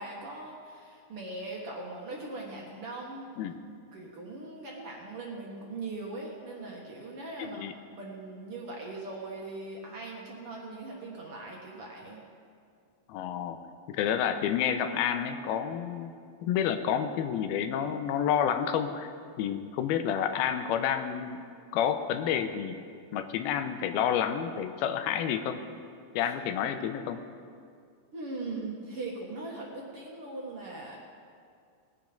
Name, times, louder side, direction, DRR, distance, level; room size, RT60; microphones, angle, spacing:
voice 1, 0.0-3.3 3.9-12.2 28.1-31.0, right 2 dB, 55° right, -2 dB, 1.7 m, -40 dB
voice 2, 7.4-7.7 13.1-13.6 13.9-16.1 16.4-19.1 19.4-21.5 21.7-22.8 23.1-25.6 26.1-27.2, left 9 dB, 85° left, 8 dB, 2.6 m, -29 dB
20.0 x 8.4 x 5.2 m, 2.2 s
omnidirectional pair, 4.4 m